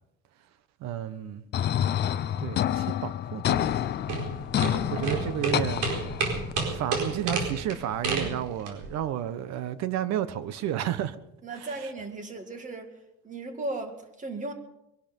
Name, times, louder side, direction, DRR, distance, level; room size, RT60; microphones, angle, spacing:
voice 1, 0.8-1.4 2.4-3.6 4.1-4.4 4.9-5.9 6.7-11.2 11.5-11.7, right 11 dB, 65° right, 1.2 m, -32 dB
sound 1, 1.5-6.5, left 11 dB, 35° left, 0.6 m, -28 dB
sound 2, 3.6-8.9, right 3 dB, 80° right, 4.5 m, -30 dB
voice 2, 11.4-13.0 13.2-14.5, right 2 dB, 25° right, 2.1 m, -36 dB
22.5 x 12.0 x 5.4 m
cardioid pair, 165°, 30 cm